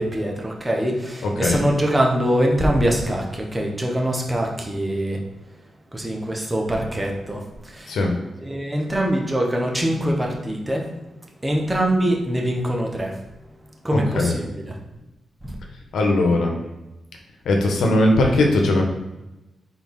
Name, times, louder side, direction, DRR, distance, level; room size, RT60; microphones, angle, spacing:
voice 1, 0.0-5.2 5.9-8.0 8.4-10.9 11.4-13.2 13.8-14.8 15.4-15.5, right 1 dB, 15° right, 0 dB, 1.2 m, -23 dB
voice 2, 13.9-14.4 15.9-16.6 17.4-18.8, left 2 dB, 85° left, 1 dB, 1.1 m, -19 dB
4.3 x 4.2 x 5.5 m, 1.0 s
cardioid pair, 105°, 0 cm